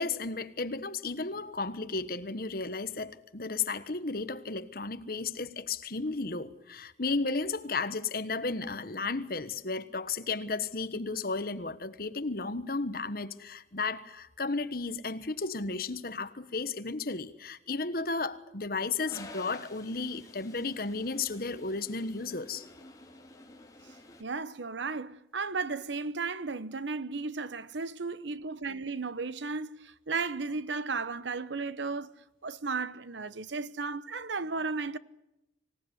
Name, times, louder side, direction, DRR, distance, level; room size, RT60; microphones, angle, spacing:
voice 1, 0.0-22.7, left 3 dB, 55° left, 1.4 m, -34 dB
Toilet flush, 19.0-24.2, left 1 dB, 20° left, 2.5 m, -50 dB
voice 2, 24.2-32.1 32.4-35.0, right 4 dB, 85° right, 1.0 m, -34 dB
25.0 x 18.0 x 9.9 m
head